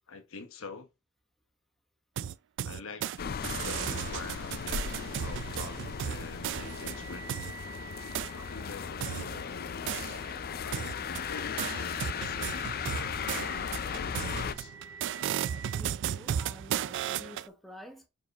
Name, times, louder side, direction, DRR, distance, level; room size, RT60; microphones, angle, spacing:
voice 1, 0.1-0.9 2.6-4.8 5.2-7.3 8.3-10.2 10.6-14.8, left 4 dB, 65° left, 1.1 m, -46 dB
sound 1, 2.2-3.2 3.4-7.5 8.1-8.3 9.0-10.4 10.7-17.5, right 9 dB, 55° right, 0.3 m, -35 dB
sound 2, 3.2-14.5, left 7 dB, 45° left, 0.4 m, -37 dB
sound 3, 4.8-15.8, right 4 dB, 25° left, 2.0 m, -50 dB
voice 2, 15.7-18.1, left 1 dB, ahead, 0.9 m, -49 dB
5.0 x 4.8 x 4.0 m
head